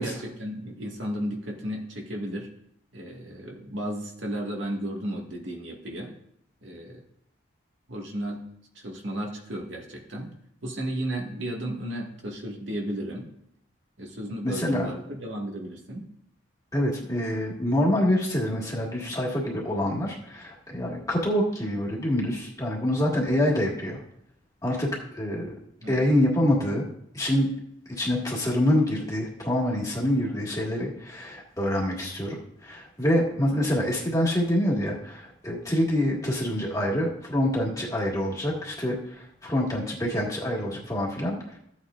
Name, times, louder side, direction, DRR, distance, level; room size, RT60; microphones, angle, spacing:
voice 1, 0.0-2.5 2.9-6.1 6.6-7.0 7.9-8.4 8.7-10.3 10.6-13.3 14.0-16.1 25.8-26.0, right 1 dB, 70° right, -1 dB, 1.8 m, -34 dB
voice 2, 14.4-14.9 16.7-24.0 24.6-24.9 25.1-25.5 25.9-26.8 27.1-27.5 27.9-41.6, left 1 dB, 15° left, -3 dB, 1.8 m, -26 dB
14.5 x 8.3 x 2.5 m, 0.72 s
head